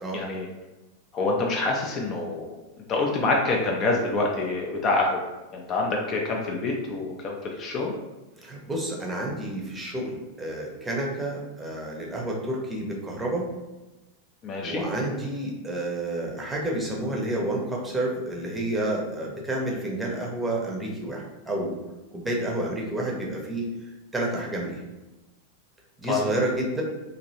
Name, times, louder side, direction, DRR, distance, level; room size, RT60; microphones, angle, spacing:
voice 1, 0.1-0.5 1.1-2.5 2.9-5.2 5.5-7.9 14.4-14.8 26.1-26.2, left 3 dB, 30° left, -1 dB, 0.4 m, -26 dB
voice 2, 8.4-13.5 14.6-21.8 22.1-23.7 24.1-24.8 26.0-26.8, right 1 dB, 10° right, -2 dB, 0.7 m, -30 dB
2.9 x 2.6 x 2.7 m, 1.1 s
figure-of-eight pair, 90°, 0 cm